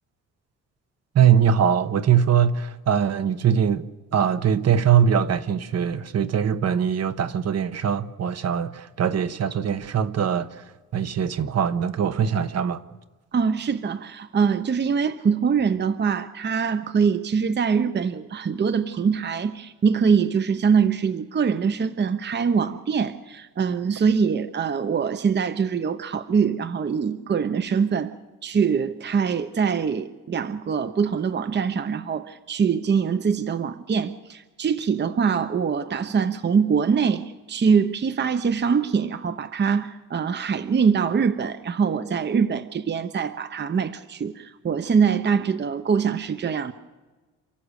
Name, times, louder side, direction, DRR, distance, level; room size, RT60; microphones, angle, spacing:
voice 1, 1.1-3.8 4.1-10.6 10.9-12.8, right 8 dB, 55° right, 1.3 m, -22 dB
voice 2, 13.3-28.1 28.4-46.7, right 6 dB, 35° right, 0.9 m, -23 dB
29.0 x 14.5 x 6.6 m
cardioid pair, 90°, 30 cm